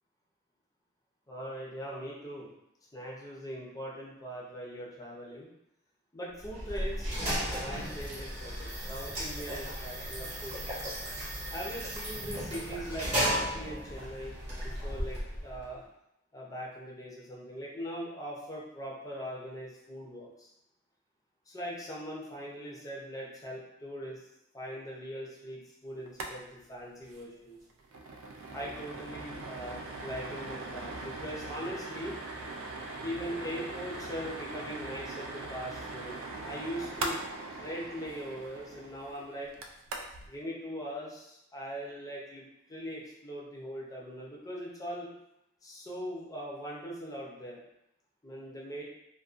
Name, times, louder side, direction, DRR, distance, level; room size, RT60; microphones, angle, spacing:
voice 1, 1.3-2.5 2.9-5.5 6.1-7.2 7.5-10.6 11.5-15.8 16.3-20.5 21.5-24.2 24.5-27.6 28.5-32.1 33.0-36.2 36.4-37.2 37.5-39.5 40.3-45.1 45.6-47.6 48.2-48.8, equal, 20° left, -4 dB, 0.6 m, -41 dB
Water pump, 6.4-15.7, equal, 35° right, 1.0 m, -35 dB
sound 1, 26.1-26.3 26.6-26.7 27.0-27.2 27.6-40.3, right 2 dB, 90° right, 0.3 m, -41 dB
2.4 x 2.2 x 2.4 m, 0.82 s
head